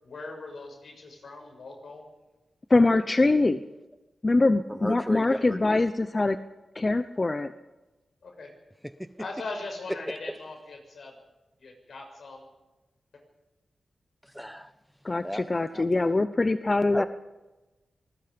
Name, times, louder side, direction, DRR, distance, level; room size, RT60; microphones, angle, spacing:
voice 1, 0.0-2.0 5.3-5.4 8.2-8.5 9.2-11.1 11.6-12.5, left 3 dB, 75° left, 2 dB, 7.0 m, -40 dB
voice 2, 2.7-3.6 4.2-6.4 6.7-7.5 15.0-17.1, left 2 dB, 30° left, 10 dB, 0.9 m, -23 dB
voice 3, 4.7-5.6 9.0-9.1 14.2-14.7 15.2-15.4 15.7-15.9 16.9-17.1, equal, ahead, 11 dB, 0.9 m, -34 dB
26.0 x 20.5 x 5.3 m, 1.1 s
wide cardioid pair, 80°, 0 cm